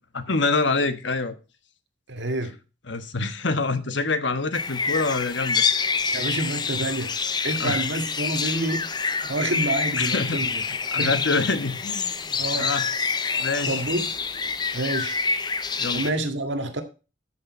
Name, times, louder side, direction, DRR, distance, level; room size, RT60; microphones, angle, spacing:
voice 1, 0.1-1.3 2.9-5.8 7.6-7.8 10.0-10.5 10.9-12.9 13.4-13.8 15.8-16.0, left 3 dB, 65° left, 1.3 m, -26 dB
voice 2, 2.1-2.6 6.1-7.1 7.4-8.9 9.2-10.6 11.0-11.1 12.4-12.7 13.7-14.1 14.7-15.2 15.9-16.8, right 1 dB, 65° right, 1.9 m, -28 dB
sound 1, 4.5-16.1, left 5 dB, 20° left, 0.6 m, -27 dB
13.5 x 6.5 x 4.4 m
head